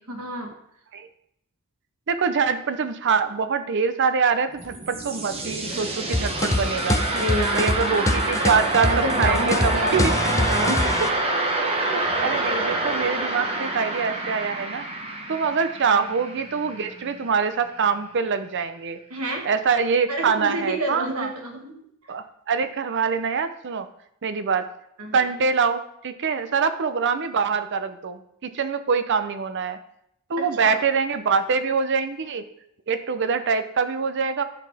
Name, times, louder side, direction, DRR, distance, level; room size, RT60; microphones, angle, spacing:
voice 1, 0.1-0.5 7.1-7.7 8.9-10.9 15.9-16.0 19.1-19.4 20.1-21.7 25.0-25.2 30.4-30.8, right 1 dB, 75° right, 2 dB, 1.5 m, -29 dB
voice 2, 2.1-7.0 7.5-10.1 11.7-14.8 15.3-19.0 19.4-21.3 22.1-23.9 24.2-24.7 25.1-29.8 30.3-32.5 32.9-34.4, right 5 dB, 55° right, 10 dB, 0.6 m, -24 dB
sound 1, 4.4-17.2, right 2 dB, 25° right, 0.9 m, -27 dB
sound 2, 6.1-11.1, left 1 dB, 15° left, 0.4 m, -24 dB
12.0 x 4.0 x 3.5 m, 0.74 s
head